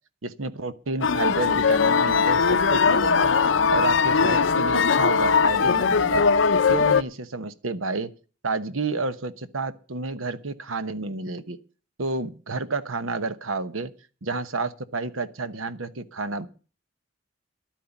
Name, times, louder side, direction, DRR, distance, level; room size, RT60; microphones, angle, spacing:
voice 1, 0.2-3.3 3.7-6.2 6.7-8.1 8.4-11.6 12.0-13.9 14.2-16.5, right 3 dB, 85° right, 13 dB, 1.1 m, -30 dB
sound 1, 1.0-7.0, left 5 dB, 70° left, 0.6 m, -20 dB
12.0 x 9.2 x 7.1 m, 0.36 s
head